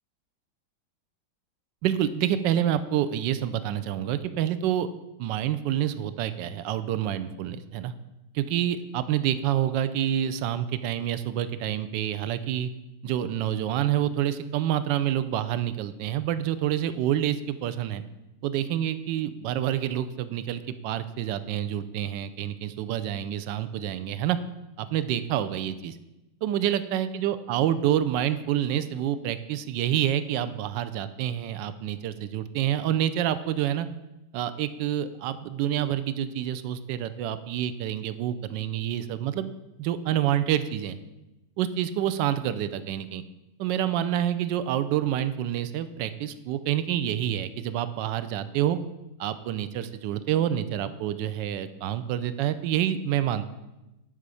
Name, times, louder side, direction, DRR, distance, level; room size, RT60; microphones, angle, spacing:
voice 1, 1.8-4.9 5.2-7.9 8.3-12.7 13.0-18.0 18.4-24.4 24.8-26.0 26.4-33.9 34.3-39.5 39.8-41.0 41.6-43.2 43.6-48.8 49.2-53.5, right 11 dB, 75° right, 12 dB, 1.1 m, -27 dB
9.6 x 3.7 x 6.8 m, 0.98 s
omnidirectional pair, 2.2 m